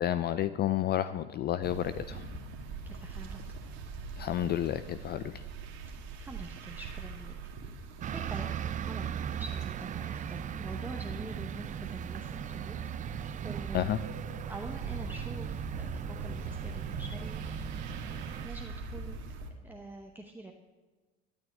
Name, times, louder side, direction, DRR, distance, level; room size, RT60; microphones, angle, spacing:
voice 1, 0.0-2.3 4.2-5.4 13.7-14.0, left 12 dB, 35° left, 13 dB, 0.4 m, -31 dB
sound 1, 1.6-19.5, right 4 dB, 60° right, 2.0 m, -43 dB
voice 2, 2.8-3.4 6.2-7.3 8.1-8.5 8.8-12.8 13.4-13.9 14.5-17.4 18.4-19.2 19.6-20.5, right 2 dB, 5° right, 2 dB, 0.9 m, -45 dB
sound 2, 8.0-18.5, right 9 dB, 25° right, 0.4 m, -38 dB
12.5 x 6.2 x 9.4 m, 1.3 s
supercardioid pair, 110°, 31 cm